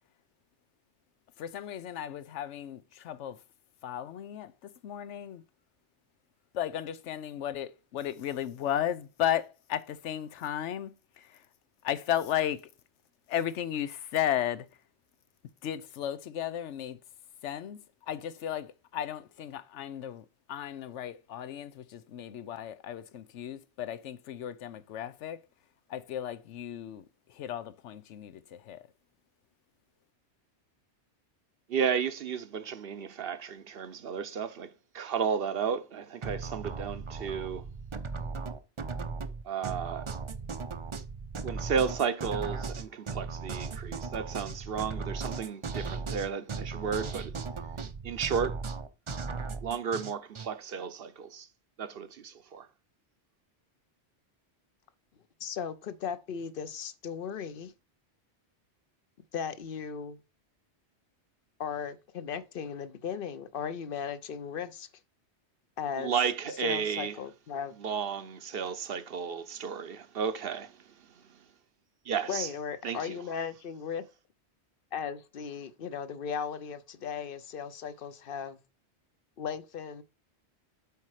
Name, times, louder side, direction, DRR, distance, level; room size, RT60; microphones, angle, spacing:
voice 1, 1.4-3.4 3.8-5.4 6.5-11.5 11.8-12.7 13.3-14.7 15.6-17.0 17.4-25.4 25.9-28.9, left 10 dB, 90° left, 1.0 m, -35 dB
voice 2, 31.7-37.6 39.4-40.1 41.4-47.4 48.0-48.6 49.6-51.5 51.8-52.7 66.0-67.2 67.8-71.4 72.0-72.5 72.8-73.2, right 7 dB, 60° right, 0.9 m, -33 dB
sound 1, 36.2-50.5, right 4 dB, 35° right, 0.5 m, -37 dB
voice 3, 55.4-57.7 59.3-60.2 61.6-64.9 65.8-66.1 66.6-67.8 72.3-74.0 74.9-78.6 79.4-80.0, left 7 dB, 55° left, 0.9 m, -37 dB
8.2 x 4.3 x 4.8 m
omnidirectional pair, 1.2 m